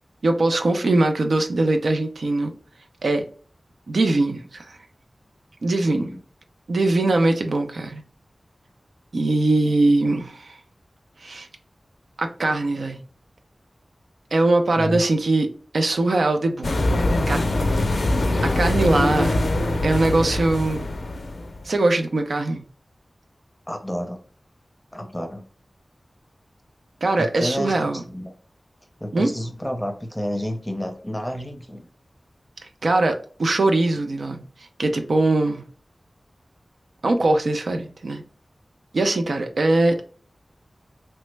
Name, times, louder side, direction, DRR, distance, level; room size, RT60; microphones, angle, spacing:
voice 1, 0.2-2.5 3.0-3.2 3.9-4.8 5.6-6.1 6.7-8.0 9.1-10.6 11.2-11.5 12.2-13.0 14.3-15.5 15.7-16.8 17.3-17.4 17.7-17.9 18.4-19.3 19.8-20.9 21.6-22.6 27.0-28.0 29.1-29.3 32.8-34.5 34.8-35.6 37.0-38.2 38.9-40.1, right 2 dB, 90° right, 5 dB, 0.4 m, -21 dB
voice 2, 5.8-6.2 9.7-9.8 10.0-10.1 14.8-15.0 23.7-24.2 24.9-25.5 27.2-28.3 29.0-31.9, equal, 5° left, 4 dB, 0.6 m, -30 dB
sound 1, 16.6-21.6, left 1 dB, 80° left, 0.4 m, -23 dB
3.2 x 2.0 x 3.2 m, 0.43 s
wide cardioid pair, 75°, 0 cm